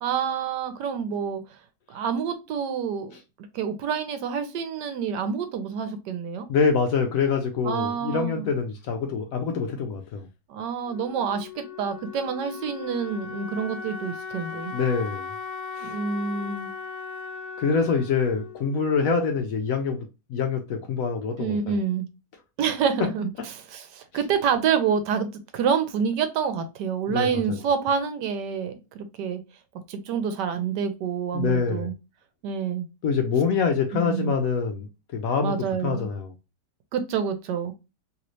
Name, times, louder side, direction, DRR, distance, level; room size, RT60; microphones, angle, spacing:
voice 1, 0.0-1.4 1.9-3.1 3.5-6.5 7.6-8.5 10.5-14.7 15.8-16.7 21.4-22.1 22.6-29.4 29.9-31.9 32.4-32.8 33.9-34.3 35.4-36.1 36.9-37.7, right 7 dB, 80° right, 1.3 m, -27 dB
voice 2, 6.5-10.3 14.7-15.3 15.7-15.9 17.6-21.8 27.1-27.6 31.3-31.9 33.0-35.5 35.8-36.3, left 5 dB, 70° left, 0.9 m, -25 dB
Wind instrument woodwind instrument, 10.9-19.6, left 5 dB, 85° left, 1.2 m, -38 dB
3.1 x 3.1 x 2.5 m
omnidirectional pair, 1.9 m